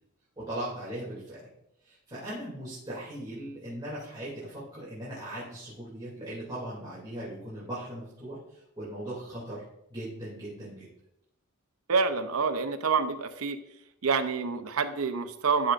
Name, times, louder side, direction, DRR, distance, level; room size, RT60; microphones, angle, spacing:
voice 1, 0.4-1.5 1.8-9.6 9.9-10.9, right 1 dB, 20° right, -9 dB, 2.7 m, -39 dB
voice 2, 11.9-13.6 14.0-15.7, right 5 dB, 80° right, 9 dB, 0.7 m, -27 dB
12.5 x 6.2 x 2.5 m, 0.82 s
head